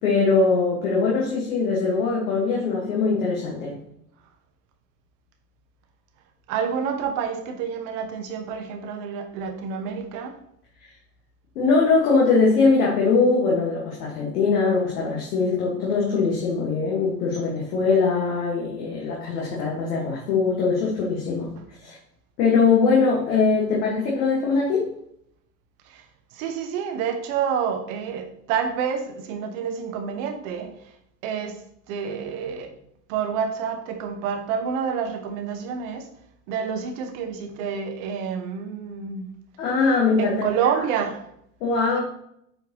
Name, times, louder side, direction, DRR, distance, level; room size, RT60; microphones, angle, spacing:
voice 1, 0.0-3.8 11.6-21.5 21.8-22.0 22.4-24.9 39.6-40.5 41.6-42.0, left 4 dB, 65° left, -4 dB, 1.9 m, -21 dB
voice 2, 6.5-10.4 25.9-26.0 26.3-30.7 31.2-32.7 33.1-36.1 36.5-39.3 40.2-41.2, right 7 dB, 55° right, 5 dB, 1.3 m, -28 dB
8.6 x 4.6 x 3.0 m, 0.73 s
figure-of-eight pair, 75°, 49 cm